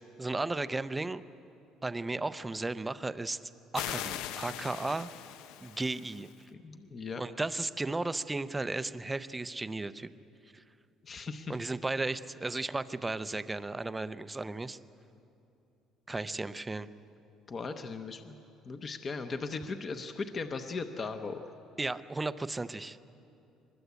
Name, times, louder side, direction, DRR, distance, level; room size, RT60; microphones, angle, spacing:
voice 1, 0.2-1.2 1.8-3.4 3.7-5.1 5.6-6.3 7.2-10.1 10.5-10.6 11.5-14.8 16.1-16.9 21.8-23.0, right 2 dB, 10° right, 13 dB, 0.5 m, -34 dB
sound 1, 3.7-6.3, left 11 dB, 85° left, 0.7 m, -40 dB
voice 2, 6.6-7.2 11.0-11.5 17.5-18.3 18.7-21.5, left 4 dB, 25° left, 8 dB, 0.8 m, -38 dB
23.5 x 21.0 x 8.2 m, 2.7 s
cardioid pair, 165°, 0 cm